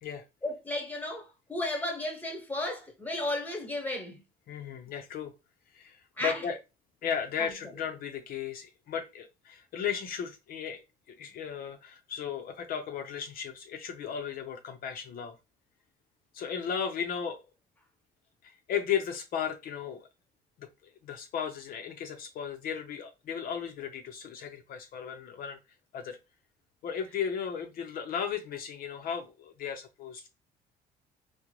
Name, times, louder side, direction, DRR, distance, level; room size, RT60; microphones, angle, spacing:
voice 1, 0.4-4.2 6.2-6.4 7.4-7.5, left 1 dB, 10° left, 1.1 m, -34 dB
voice 2, 4.5-5.3 5.7-6.6 7.0-10.8 11.1-15.4 16.3-17.4 18.4-20.1 20.6-25.6 25.9-26.2 26.8-30.3, left 7 dB, 60° left, 0.6 m, -35 dB
3.7 x 2.1 x 2.9 m
cardioid pair, 110°, 17 cm